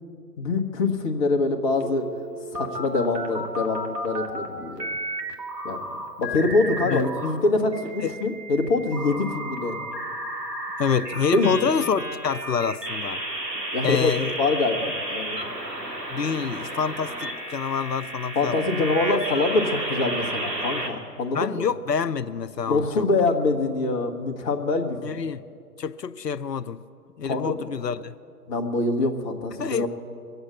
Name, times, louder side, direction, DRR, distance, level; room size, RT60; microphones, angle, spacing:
voice 1, 0.4-2.1 2.5-5.0 5.6-5.9 6.2-9.8 11.3-11.5 13.7-15.4 18.3-21.7 22.7-25.0 27.2-27.6 28.5-29.9, left 3 dB, 20° left, 3 dB, 1.0 m, -24 dB
sound 1, 1.8-4.5 4.8-7.4 7.7-20.9, right 1 dB, 80° right, 2.4 m, -32 dB
voice 2, 10.8-13.2 13.8-14.3 16.1-18.6 21.3-23.1 25.0-25.4 25.8-26.8 27.2-28.1 29.6-29.9, left 6 dB, 85° left, 13 dB, 0.6 m, -27 dB
22.0 x 8.0 x 8.1 m, 2.3 s
figure-of-eight pair, 125°, 48 cm